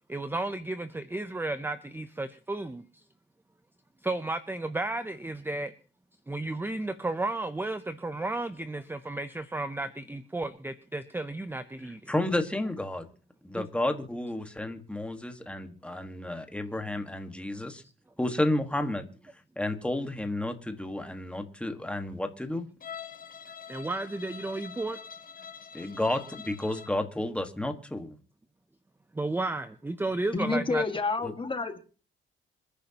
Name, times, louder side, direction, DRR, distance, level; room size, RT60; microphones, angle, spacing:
voice 1, 0.1-2.9 4.0-5.7 6.3-12.1 13.5-13.7 23.7-25.0 25.7-25.9 29.1-30.8, right 2 dB, 10° right, 11 dB, 0.6 m, -33 dB
voice 2, 11.8-13.1 13.4-17.8 18.2-19.0 19.5-22.7 25.7-28.1 31.2-31.3, left 1 dB, 5° left, 6 dB, 1.6 m, -31 dB
Bowed string instrument, 22.8-27.0, left 7 dB, 40° left, 1.3 m, -45 dB
voice 3, 30.3-31.8, left 3 dB, 25° left, 7 dB, 1.8 m, -29 dB
26.5 x 10.5 x 2.9 m, 0.38 s
cardioid pair, 125°, 21 cm